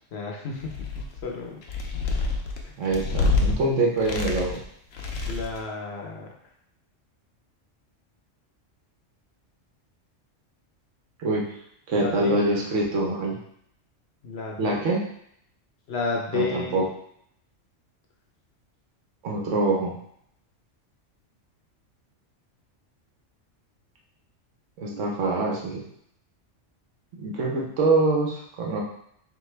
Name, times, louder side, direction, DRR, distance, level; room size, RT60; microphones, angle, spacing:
voice 1, 0.1-1.6 2.6-2.7 5.3-6.3 12.0-12.4 14.2-14.8 15.9-16.8, left 4 dB, 60° left, 0 dB, 0.8 m, -32 dB
sound 1, 0.6-1.2 1.6-3.5 4.0-4.6 4.9-5.6, left 3 dB, 90° left, 1.0 m, -27 dB
voice 2, 2.8-4.6 11.2-11.5 11.9-13.4 14.6-15.0 16.3-16.8 19.2-20.0 24.8-25.8 27.2-28.8, right 2 dB, 75° right, -2 dB, 1.2 m, -24 dB
3.7 x 3.2 x 3.2 m, 0.71 s
omnidirectional pair, 1.3 m